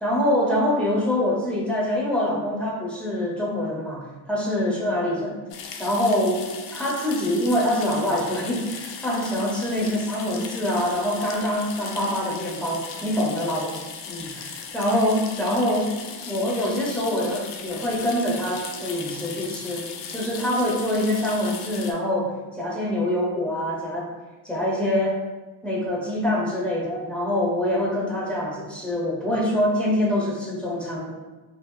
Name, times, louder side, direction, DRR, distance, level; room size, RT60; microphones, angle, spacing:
voice 1, 0.0-5.4 5.8-13.7 14.1-24.1 24.4-25.2 25.6-31.1, left 1 dB, 5° left, -6 dB, 0.7 m, -25 dB
sound 1, 5.5-21.9, left 6 dB, 80° left, 0.5 m, -37 dB
3.3 x 2.1 x 2.3 m, 1.2 s
cardioid pair, 100°, 43 cm